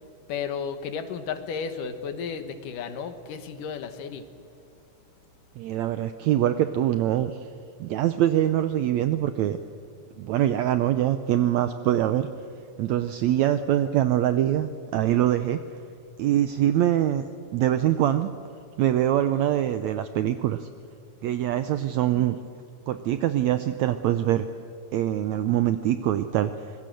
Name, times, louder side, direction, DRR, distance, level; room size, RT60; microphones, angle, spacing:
voice 1, 0.3-4.3, left 6 dB, 70° left, 9 dB, 2.8 m, -33 dB
voice 2, 5.6-7.5 7.8-9.6 10.2-12.3 12.8-15.6 16.2-17.2 17.5-18.3 18.8-20.7 21.2-22.4 22.9-24.5 24.9-26.7, right 12 dB, 80° right, 10 dB, 1.6 m, -24 dB
25.5 x 20.5 x 7.7 m, 2.4 s
omnidirectional pair, 4.0 m